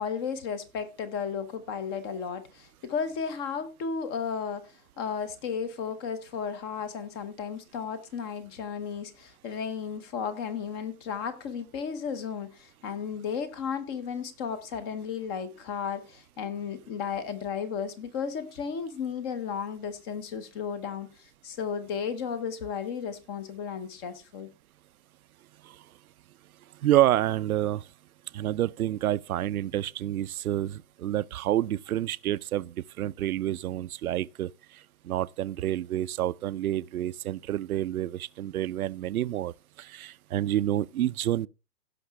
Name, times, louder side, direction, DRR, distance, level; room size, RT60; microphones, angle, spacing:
voice 1, 0.0-4.7 5.0-24.5, left 6 dB, 15° left, 0.7 m, -34 dB
voice 2, 26.8-27.8 28.3-34.5 35.0-41.5, right 13 dB, 65° right, 0.6 m, -28 dB
17.0 x 5.8 x 3.4 m
hypercardioid pair, 150°, 48 cm